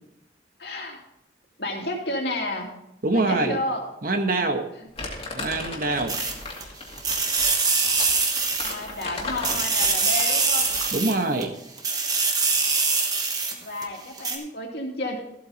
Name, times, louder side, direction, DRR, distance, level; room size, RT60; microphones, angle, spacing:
voice 1, 0.6-1.0 1.6-2.7 3.1-3.8 4.8-4.9 6.0-6.2 8.6-10.8 13.6-15.2, left 1 dB, 60° left, 1 dB, 2.5 m, -31 dB
voice 2, 3.0-3.6 4.0-4.6 5.3-6.2 10.9-11.5, right 2 dB, 50° right, 6 dB, 1.1 m, -24 dB
Crumpling crinkling, 5.0-11.0, left 3 dB, 30° left, 2.2 m, -36 dB
sound 1, 6.1-6.6 7.0-9.0 9.4-11.4 11.8-13.8 14.2-14.4, right 4 dB, 20° right, 1.3 m, -23 dB
14.5 x 8.4 x 4.0 m, 0.82 s
head